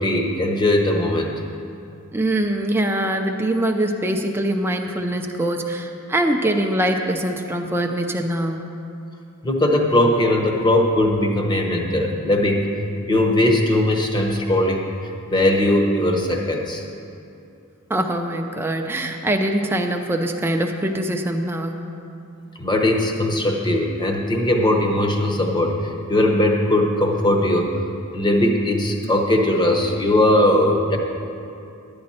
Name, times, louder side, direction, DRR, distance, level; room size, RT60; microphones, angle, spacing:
voice 1, 0.0-1.4 9.4-12.7 13.1-14.9 15.3-16.8 22.6-27.7 28.1-31.0, left 1 dB, 20° left, 1 dB, 0.9 m, -19 dB
voice 2, 2.1-8.7 17.9-21.9, right 1 dB, 10° right, 3 dB, 0.5 m, -23 dB
12.0 x 8.7 x 4.2 m, 2.6 s
head